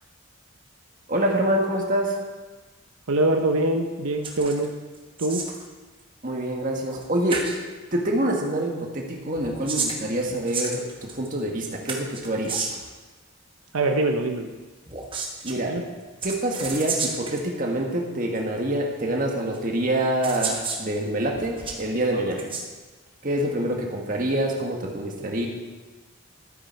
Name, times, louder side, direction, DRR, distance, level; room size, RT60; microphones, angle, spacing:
voice 1, 1.1-2.2 6.2-7.5 7.9-12.7 15.4-15.8 16.2-22.5 23.2-25.5, right 1 dB, 40° right, 0 dB, 1.7 m, -26 dB
voice 2, 3.1-4.7 5.2-5.4 13.7-14.5 15.7-15.8, right 2 dB, 85° right, 5 dB, 0.8 m, -23 dB
sound 1, 4.2-4.7 4.9-5.6 6.9-7.0 7.3-7.6 9.3-11.3 11.9-12.9 14.9-15.6 16.2-17.4 18.4-18.5 19.5-19.6 20.2-20.8 21.3-21.8 22.3-22.7, right 4 dB, 25° right, 1.1 m, -31 dB
12.5 x 8.8 x 4.5 m, 1.3 s
head